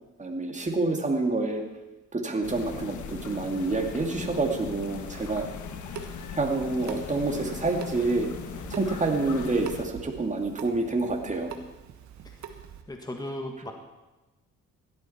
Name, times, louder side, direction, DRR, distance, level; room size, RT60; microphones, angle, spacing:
voice 1, 0.2-1.6 2.1-5.4 6.3-8.3 8.7-11.5, right 3 dB, 25° right, 2 dB, 2.4 m, -27 dB
sound 1, 2.4-9.8, left 6 dB, 75° left, 1.3 m, -39 dB
Water tap faucet / Sink (filling or washing) / Drip, 5.6-12.8, right 7 dB, 70° right, 1.4 m, -44 dB
voice 2, 12.9-13.7, left 1 dB, 15° left, 3 dB, 1.6 m, -36 dB
16.0 x 12.5 x 4.3 m, 1.1 s
cardioid pair, 90°, 30 cm